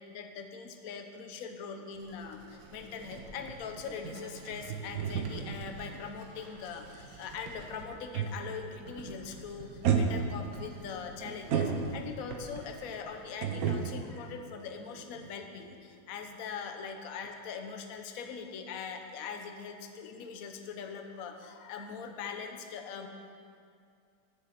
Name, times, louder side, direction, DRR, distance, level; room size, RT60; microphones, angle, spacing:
voice 1, 0.1-23.1, left 6 dB, 55° left, 5 dB, 1.1 m, -42 dB
Writing, 1.9-13.9, right 3 dB, 80° right, 1.9 m, -50 dB
sound 1, 3.0-8.7 9.0-9.3 9.8-12.3 13.4-15.3 15.6-15.8, right 6 dB, 60° right, 1.1 m, -34 dB
9.0 x 7.2 x 7.4 m, 2.4 s
omnidirectional pair, 2.0 m